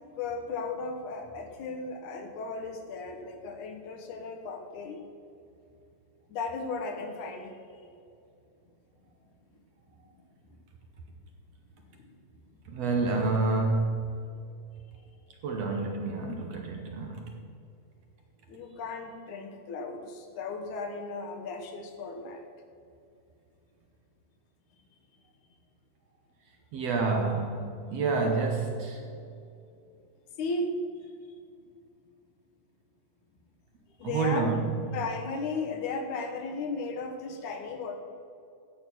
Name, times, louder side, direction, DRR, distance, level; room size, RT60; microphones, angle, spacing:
voice 1, 0.2-5.0 6.3-7.5 7.8-7.9 10.5-10.6 11.9-12.1 18.5-22.4 29.1-29.3 30.4-30.8 34.0-34.5 34.9-38.0, left 3 dB, 65° left, 5 dB, 2.2 m, -35 dB
voice 2, 12.7-14.2 15.4-17.3 26.7-29.0 34.0-34.7, right 3 dB, 65° right, 3 dB, 1.7 m, -28 dB
13.5 x 8.9 x 6.1 m, 2.5 s
omnidirectional pair, 4.2 m